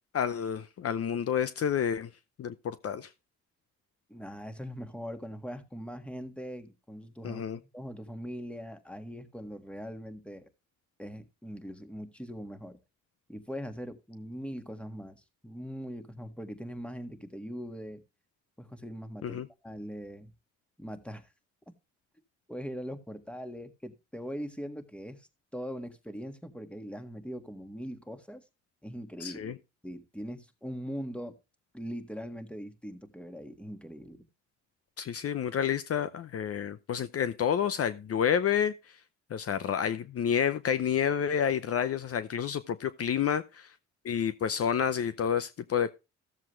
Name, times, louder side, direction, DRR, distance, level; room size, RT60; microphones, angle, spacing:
voice 1, 0.1-2.1 2.4-3.1 7.2-7.6 19.2-19.5 29.2-29.5 35.0-39.0 39.3-43.7 44.0-45.9, left 8 dB, 50° left, 0.7 m, -29 dB
voice 2, 4.1-7.5 7.7-10.5 11.0-12.8 13.3-18.0 18.6-20.3 20.8-21.3 22.5-28.4 28.8-29.5 29.8-31.4 31.7-34.3, equal, 5° left, 1.7 m, -41 dB
14.5 x 7.4 x 3.1 m
cardioid pair, 75°, 29 cm